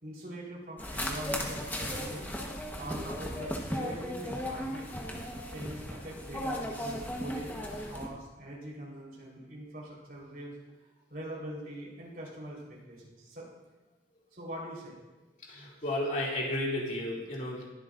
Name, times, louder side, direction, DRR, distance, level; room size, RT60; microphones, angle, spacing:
voice 1, 0.0-2.3 2.8-4.9 5.5-7.5 7.9-10.5 11.1-13.5 14.3-15.0, right 1 dB, 55° right, -4 dB, 4.3 m, -43 dB
sound 1, 0.8-8.1, equal, 10° left, 1.2 m, -36 dB
voice 2, 15.5-17.7, left 1 dB, 45° left, -4 dB, 2.7 m, -33 dB
20.5 x 8.1 x 2.6 m, 1.1 s
head